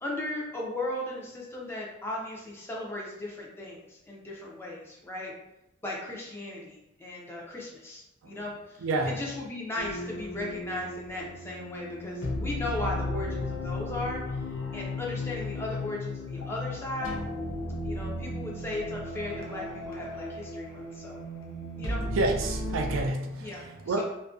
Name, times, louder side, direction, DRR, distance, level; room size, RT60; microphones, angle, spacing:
voice 1, 0.0-5.3 5.8-14.2 14.7-17.2 17.8-21.2 21.8-22.0 23.4-23.6 23.9-24.0, left 1 dB, 10° left, -3 dB, 0.4 m, -36 dB
voice 2, 8.8-9.2 22.2-23.5 23.9-24.0, right 2 dB, 80° right, 4 dB, 0.3 m, -28 dB
sound 1, 9.8-23.0, left 1 dB, 75° left, 0.4 m, -35 dB
2.4 x 2.1 x 2.4 m, 0.87 s
head